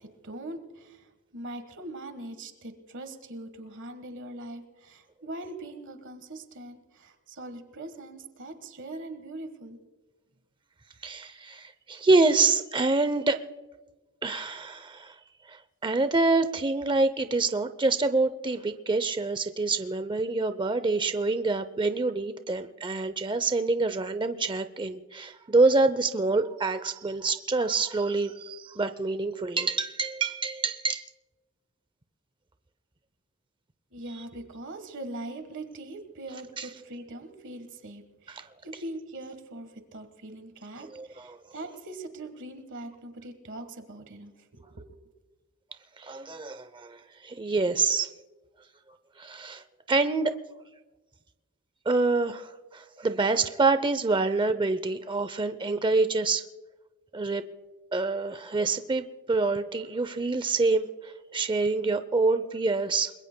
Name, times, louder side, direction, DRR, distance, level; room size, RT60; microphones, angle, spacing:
voice 1, 0.0-9.8 33.9-45.0, right 1 dB, 55° right, 8 dB, 1.4 m, -42 dB
voice 2, 11.0-13.4 14.2-15.2 15.5-31.1 36.6-36.7 38.3-38.4 40.8-41.4 46.0-48.1 49.2-50.3 51.9-56.4 57.1-57.4 57.9-63.1, right 3 dB, 20° right, 11 dB, 0.6 m, -26 dB
29.0 x 22.0 x 2.2 m, 1.2 s
head